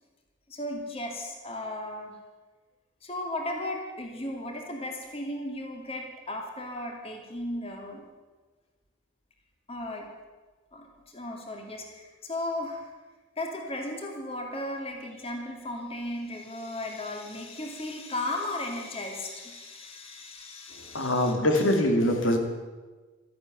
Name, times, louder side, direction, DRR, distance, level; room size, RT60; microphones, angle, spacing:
voice 1, 0.5-2.2 3.0-8.1 9.7-10.1 10.7-12.9 13.4-21.8, left 1 dB, 30° left, 2 dB, 2.5 m, -36 dB
voice 2, 20.9-22.4, left 1 dB, 75° left, 5 dB, 2.5 m, -23 dB
13.5 x 11.0 x 9.3 m, 1.3 s
head